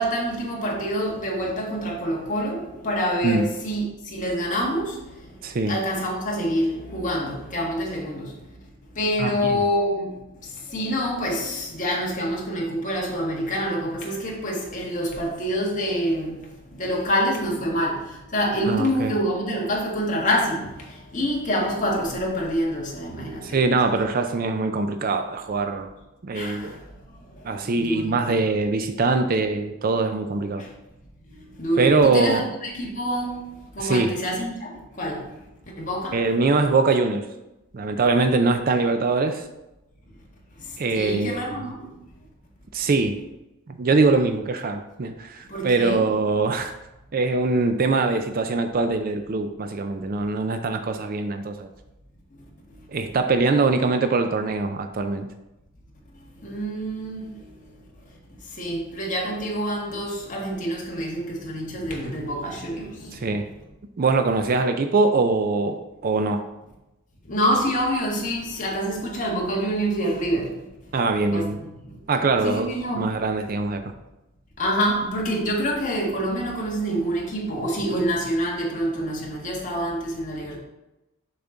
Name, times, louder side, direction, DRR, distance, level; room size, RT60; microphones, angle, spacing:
voice 1, 0.0-5.4 5.7-8.5 8.9-24.0 26.3-26.8 27.1-28.4 30.6-30.7 31.3-33.4 33.7-35.4 35.8-36.2 40.6-41.9 45.5-46.0 52.8-52.9 56.4-57.7 58.5-63.3 67.2-70.6 71.3-72.0 72.4-73.1 74.6-80.6, equal, 35° left, -3 dB, 1.7 m, -27 dB
voice 2, 5.4-5.8 9.2-9.5 18.7-19.1 23.4-25.9 26.2-26.8 27.4-30.6 31.8-32.5 33.8-34.1 36.1-37.2 37.7-39.4 40.8-41.4 42.7-43.2 43.7-46.7 47.1-51.7 52.9-55.3 63.1-63.4 64.0-66.4 70.9-71.6 72.1-73.8, right 3 dB, 40° right, 8 dB, 0.4 m, -22 dB
7.0 x 5.8 x 3.8 m, 0.96 s
head